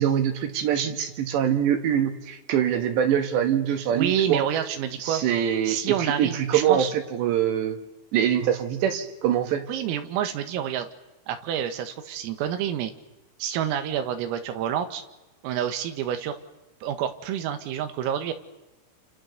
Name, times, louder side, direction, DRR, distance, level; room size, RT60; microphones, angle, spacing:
voice 1, 0.0-4.4 5.0-7.8 8.1-9.7, right 9 dB, 65° right, 6 dB, 3.5 m, -24 dB
voice 2, 3.9-5.2 5.7-6.9 9.7-10.9 11.3-12.9 13.4-15.0 15.4-16.4 16.8-18.3, right 9 dB, 85° right, 8 dB, 4.4 m, -28 dB
29.0 x 28.5 x 6.8 m, 1.0 s
omnidirectional pair, 5.9 m